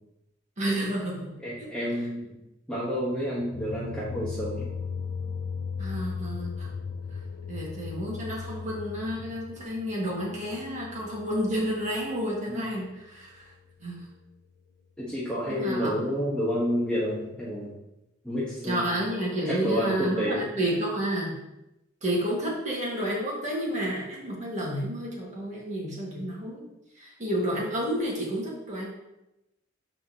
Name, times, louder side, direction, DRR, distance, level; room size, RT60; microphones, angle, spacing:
voice 1, 0.6-1.3 5.8-6.7 7.5-13.5 13.8-14.0 15.5-15.9 18.6-21.4 22.0-26.6 27.0-28.9, equal, 35° right, -4 dB, 2.0 m, -30 dB
voice 2, 1.4-2.4 2.7-4.6 12.5-12.6 15.0-17.7 18.2-18.9 19.4-20.5, equal, 5° left, -8 dB, 1.3 m, -29 dB
sound 1, 3.4-12.2, left 5 dB, 85° left, 0.5 m, -37 dB
11.5 x 4.3 x 3.0 m, 0.91 s
head